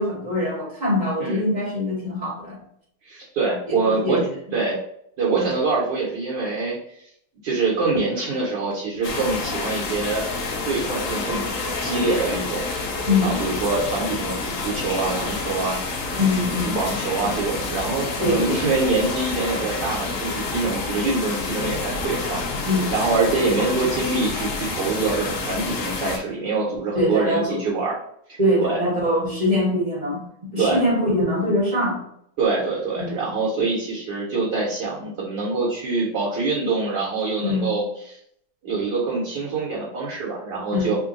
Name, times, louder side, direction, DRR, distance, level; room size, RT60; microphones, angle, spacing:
voice 1, 0.0-2.6 3.7-4.2 13.1-13.4 16.1-16.8 18.2-18.5 22.6-22.9 26.9-27.6 28.4-32.0 33.0-33.4 37.4-37.7 40.7-40.9, left 1 dB, 30° right, -4 dB, 1.0 m, -23 dB
voice 2, 3.0-4.2 4.5-4.8 5.2-6.8 7.4-10.3 10.6-11.5 11.8-12.7 13.2-15.8 16.1-16.2 16.5-22.4 22.9-28.0 28.6-28.8 30.6-30.8 32.4-37.8 38.6-41.0, right 3 dB, 65° right, -5 dB, 1.4 m, -25 dB
sound 1, 9.0-26.2, left 3 dB, 70° left, 0.7 m, -28 dB
3.7 x 2.2 x 3.7 m, 0.70 s
omnidirectional pair, 2.2 m